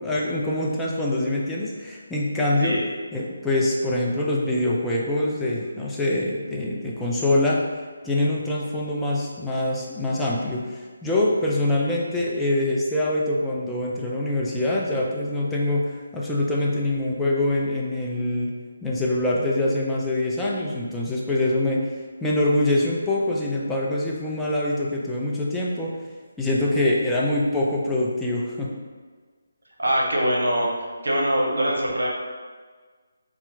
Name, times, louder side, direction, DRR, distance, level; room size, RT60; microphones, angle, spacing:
voice 1, 0.0-2.7 3.1-7.6 8.0-18.5 18.8-21.8 22.2-25.9 26.4-28.7, left 1 dB, 5° left, -5 dB, 0.4 m, -24 dB
voice 2, 29.8-30.7 31.0-32.1, equal, 75° right, -2 dB, 0.8 m, -22 dB
2.8 x 2.4 x 3.2 m, 1.5 s
figure-of-eight pair, 150°, 0 cm